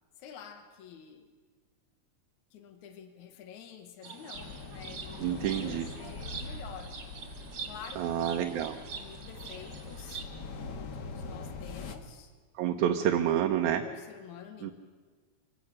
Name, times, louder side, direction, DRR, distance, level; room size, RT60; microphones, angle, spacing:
voice 1, 0.2-1.3 2.5-7.0 7.6-8.5 8.9-10.2 10.6-12.3 13.6-14.7, left 8 dB, 80° left, 7 dB, 2.7 m, -49 dB
sound 1, 4.0-10.2, right 5 dB, 50° right, 3.1 m, -44 dB
sound 2, 4.3-12.0, left 4 dB, 50° left, 1.4 m, -43 dB
voice 2, 5.2-5.9 8.0-8.8 12.6-13.9 14.6-14.7, right 10 dB, 80° right, 4 dB, 2.2 m, -28 dB
25.5 x 16.5 x 6.6 m, 1.4 s
omnidirectional pair, 3.4 m